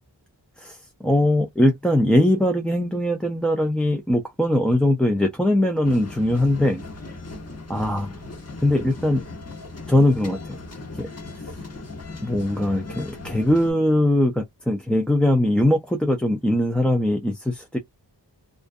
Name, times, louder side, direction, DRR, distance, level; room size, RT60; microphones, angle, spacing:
voice 1, 0.6-6.8 7.7-8.2 8.6-9.2 9.9-10.6 10.9-11.1 12.2-17.8, left 1 dB, 5° left, 0.4 m, -21 dB
sound 1, 5.8-13.7, left 3 dB, 35° left, 1.1 m, -37 dB
2.4 x 2.2 x 2.5 m
wide cardioid pair, 60°, 40 cm